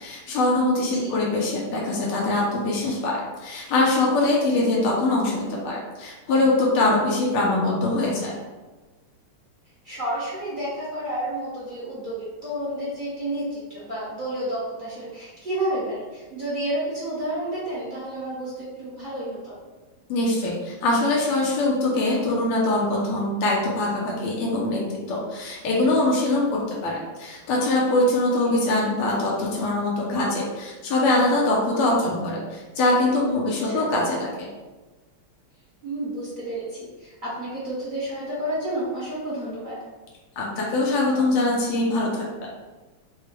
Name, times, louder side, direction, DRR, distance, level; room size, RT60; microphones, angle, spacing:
voice 1, 0.0-8.3 20.1-24.8 25.1-34.5 40.4-42.2, left 2 dB, 85° left, -3 dB, 1.6 m, -23 dB
voice 2, 0.8-1.2 9.8-19.6 28.5-28.6 33.7-33.9 35.8-39.8, right 1 dB, 30° right, -9 dB, 1.0 m, -30 dB
4.7 x 2.3 x 3.3 m, 1.2 s
omnidirectional pair, 2.4 m